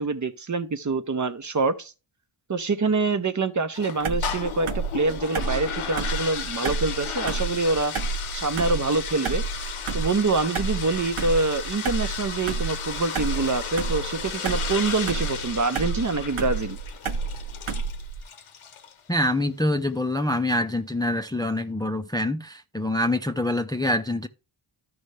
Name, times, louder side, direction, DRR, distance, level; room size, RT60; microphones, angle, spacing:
voice 1, 0.0-1.9 2.5-7.9 8.3-9.4 9.9-16.8, right 3 dB, 35° right, 0.8 m, -25 dB
sound 1, 3.7-19.0, left 7 dB, 90° left, 1.1 m, -35 dB
sound 2, 4.0-18.2, right 4 dB, 80° right, 0.9 m, -31 dB
voice 2, 19.1-24.3, left 1 dB, 10° left, 0.5 m, -25 dB
13.0 x 5.5 x 3.3 m
cardioid pair, 70°, 49 cm